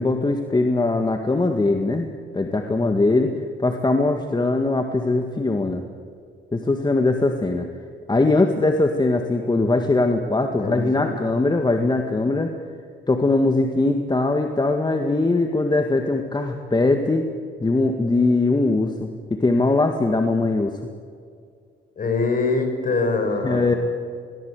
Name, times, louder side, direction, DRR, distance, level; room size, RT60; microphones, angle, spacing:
voice 1, 0.0-2.1 2.3-5.8 6.5-7.7 8.1-12.6 13.1-17.3 17.6-20.8 23.4-23.8, left 2 dB, 20° left, 5 dB, 1.8 m, -21 dB
voice 2, 10.5-11.2 22.0-23.8, left 3 dB, 45° left, 6 dB, 5.5 m, -24 dB
22.0 x 18.0 x 8.4 m, 2.2 s
cardioid pair, 90°, 20 cm